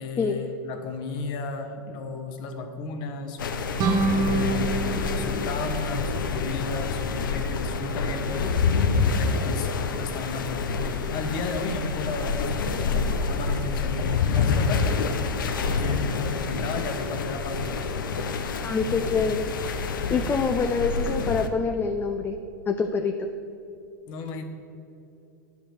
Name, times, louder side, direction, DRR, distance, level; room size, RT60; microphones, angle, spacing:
voice 1, 0.0-3.4 4.0-4.9 5.1-8.6 9.1-10.7 11.0-15.1 15.6-17.7 24.1-24.4, left 3 dB, 45° left, 4 dB, 1.2 m, -34 dB
sound 1, 3.4-21.5, left 4 dB, 75° left, 0.8 m, -27 dB
sound 2, 3.8-6.5, right 3 dB, 35° right, 1.0 m, -27 dB
voice 2, 18.6-19.5 20.1-22.4 22.7-23.3, left 5 dB, 20° left, 6 dB, 0.5 m, -26 dB
10.0 x 5.1 x 6.7 m, 2.8 s
hypercardioid pair, 100°, 11 cm